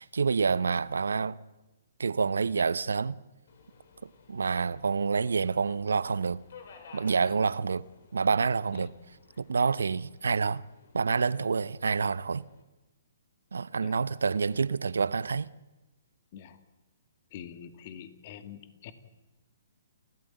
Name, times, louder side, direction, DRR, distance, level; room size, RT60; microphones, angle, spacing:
voice 1, 0.0-1.4 2.0-3.1 4.0-6.4 6.9-7.8 8.1-8.9 9.4-10.6 10.9-12.4 13.5-15.5, right 5 dB, 85° right, 0.7 m, -28 dB
Subway metro underground, 3.5-12.6, left 5 dB, 65° left, 4.9 m, -56 dB
voice 2, 17.3-18.9, left 9 dB, 45° left, 2.3 m, -45 dB
29.0 x 14.5 x 9.2 m
hypercardioid pair, 140°, 0 cm